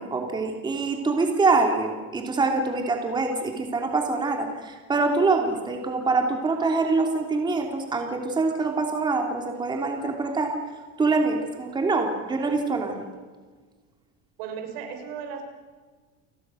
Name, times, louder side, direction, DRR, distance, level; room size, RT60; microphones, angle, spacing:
voice 1, 0.0-10.5 11.0-13.1, right 3 dB, 15° right, 2 dB, 3.0 m, -25 dB
voice 2, 14.4-15.4, right 7 dB, 85° right, 4 dB, 6.0 m, -35 dB
29.5 x 20.5 x 6.4 m, 1.5 s
cardioid pair, 165°, 29 cm